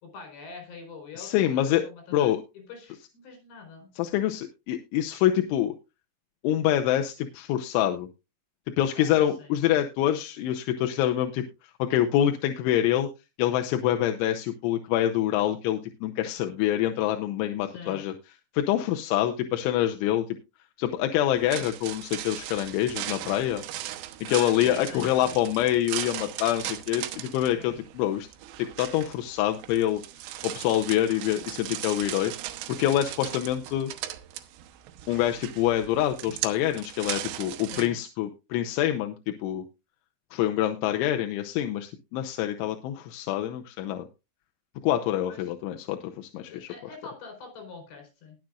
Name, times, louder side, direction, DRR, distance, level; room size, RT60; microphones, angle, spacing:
voice 1, 0.0-3.9 8.9-9.5 17.7-18.0 24.3-25.4 27.6-27.8 37.7-38.0 45.3-45.4 46.5-48.4, left 4 dB, 60° left, 5 dB, 6.6 m, -44 dB
voice 2, 1.2-1.8 2.1-2.4 4.0-5.7 6.4-8.1 8.8-13.1 13.4-18.1 18.5-20.4 20.8-23.6 24.3-28.3 28.6-30.0 30.4-32.3 32.7-33.9 35.1-39.6 40.3-44.1 44.8-46.7, left 12 dB, 80° left, 5 dB, 3.1 m, -26 dB
sound 1, 21.4-37.9, right 13 dB, 85° right, 3.5 m, -38 dB
20.0 x 7.6 x 2.5 m, 0.27 s
omnidirectional pair, 5.7 m